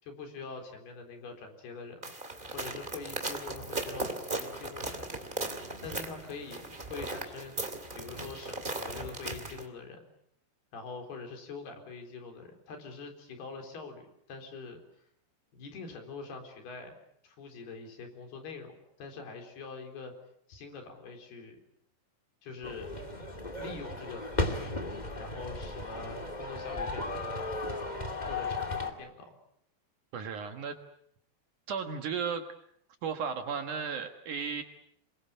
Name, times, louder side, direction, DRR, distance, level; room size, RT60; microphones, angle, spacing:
voice 1, 0.0-2.2 2.5-7.6 8.0-10.1 10.7-14.8 15.5-17.0 17.2-20.1 20.5-21.6 22.4-22.9 23.6-24.8 25.2-27.6 28.2-29.4, left 4 dB, 65° left, 5 dB, 5.8 m, -44 dB
sound 1, 2.0-9.7, right 2 dB, 20° right, 1.6 m, -38 dB
sound 2, 22.6-28.9, left 2 dB, 20° left, 1.2 m, -35 dB
voice 2, 30.1-30.8 31.7-32.5 33.0-34.6, right 6 dB, 60° right, 6 dB, 2.4 m, -34 dB
27.5 x 23.0 x 8.2 m, 0.71 s
omnidirectional pair, 5.0 m